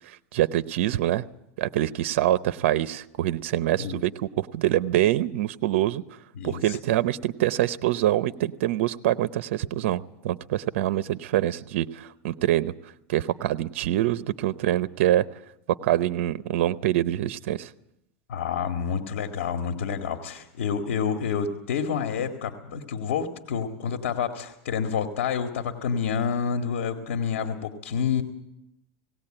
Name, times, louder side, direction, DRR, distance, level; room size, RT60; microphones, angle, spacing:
voice 1, 0.1-1.2 1.6-4.1 4.4-6.0 6.4-12.7 13.1-15.2 15.8-17.7, right 13 dB, 75° right, 15 dB, 0.8 m, -25 dB
voice 2, 6.4-6.8 18.3-28.2, left 7 dB, 85° left, 5 dB, 2.0 m, -28 dB
18.0 x 18.0 x 8.9 m, 0.83 s
supercardioid pair, 130°, 7 cm